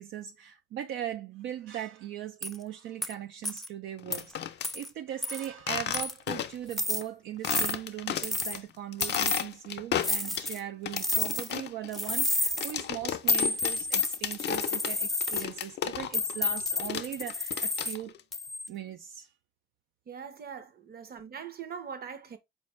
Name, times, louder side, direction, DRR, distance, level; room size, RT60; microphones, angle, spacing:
voice 1, 0.0-4.4 4.7-18.1 18.7-19.3 20.5-20.6, right 11 dB, 75° right, 0.4 m, -39 dB
sound 1, 2.4-2.6 3.0-3.1 3.4-3.7 4.1-4.2 4.6-4.9 5.2-5.5 5.9-6.3 6.7-7.0 7.4-7.7 8.2-8.6 9.0-9.4 10.0-10.6 11.0-11.6 11.9-12.7 13.3-15.4 16.1-18.0 18.3-18.7, left 2 dB, ahead, 0.4 m, -30 dB
sound 2, 4.0-4.7 5.6-6.7 7.0-7.1 7.4-8.6 8.9-10.5 10.9-16.3 16.6-18.2, left 10 dB, 60° left, 0.5 m, -34 dB
voice 2, 20.1-22.4, right 7 dB, 50° right, 0.8 m, -42 dB
4.3 x 2.5 x 3.1 m
cardioid pair, 90°, 20 cm